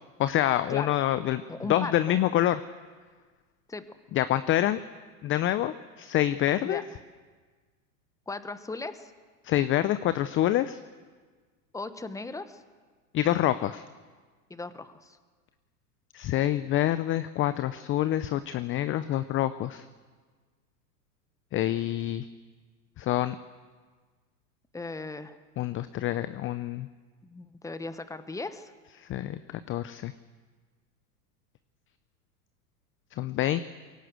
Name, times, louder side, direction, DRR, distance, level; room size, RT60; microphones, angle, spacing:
voice 1, 0.2-1.4 1.7-2.6 4.1-4.8 5.2-6.8 9.4-10.8 13.1-13.8 16.1-19.8 21.5-22.2 23.0-23.4 25.6-26.9 29.0-30.1 33.2-33.6, left 13 dB, 25° left, 13 dB, 0.6 m, -26 dB
voice 2, 1.5-2.2 3.7-3.8 6.6-7.0 8.3-9.1 11.7-12.6 14.5-15.2 24.7-25.4 27.2-28.7, left 3 dB, 5° left, 11 dB, 1.2 m, -37 dB
22.0 x 18.0 x 7.9 m, 1.5 s
hypercardioid pair, 105°, 47 cm